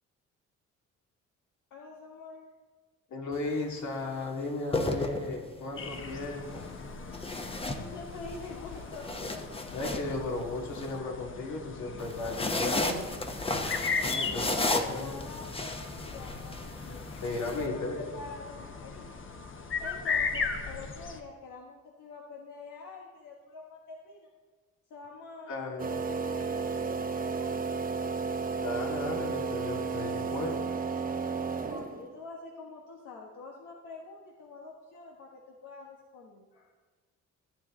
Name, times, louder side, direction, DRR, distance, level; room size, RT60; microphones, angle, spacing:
voice 1, 1.7-2.5 7.7-10.2 12.4-13.2 13.9-19.1 19.8-24.3 24.9-27.8 31.7-36.7, left 3 dB, 85° left, -1 dB, 1.3 m, -46 dB
voice 2, 3.1-6.6 9.7-13.1 14.0-15.2 17.2-18.0 25.5-26.0 28.6-30.7, left 2 dB, 70° left, 0 dB, 2.4 m, -35 dB
sound 1, 3.3-3.6 4.5-5.7 7.1-8.4 8.8-10.9 12.0-17.7, left 2 dB, 20° left, 1.0 m, -34 dB
sound 2, 5.8-21.2, left 5 dB, 40° left, 1.1 m, -38 dB
sound 3, 25.8-32.1, right 5 dB, 30° right, 0.8 m, -33 dB
14.5 x 8.7 x 3.8 m, 1.3 s
cardioid pair, 90°, 30 cm